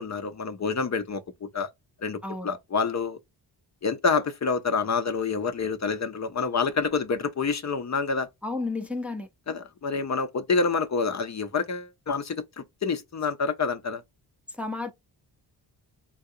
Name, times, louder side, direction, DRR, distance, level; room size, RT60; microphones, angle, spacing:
voice 1, 0.0-1.7 2.0-3.2 3.8-8.3 9.5-14.0, left 4 dB, 40° left, 0.7 m, -27 dB
voice 2, 2.2-2.6 8.4-9.3 14.5-14.9, left 3 dB, 5° right, 0.6 m, -32 dB
3.6 x 2.3 x 2.6 m
cardioid pair, 80°, 43 cm